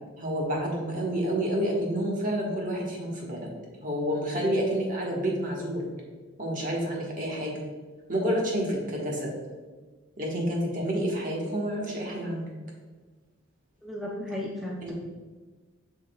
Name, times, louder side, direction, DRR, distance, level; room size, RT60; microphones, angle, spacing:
voice 1, 0.2-3.5 3.8-5.9 6.4-7.5 8.1-9.3 10.2-12.5 14.8-14.9, equal, 40° right, -2 dB, 1.3 m, -29 dB
voice 2, 13.8-14.9, left 1 dB, ahead, -4 dB, 0.5 m, -34 dB
7.2 x 6.1 x 2.3 m, 1.4 s
head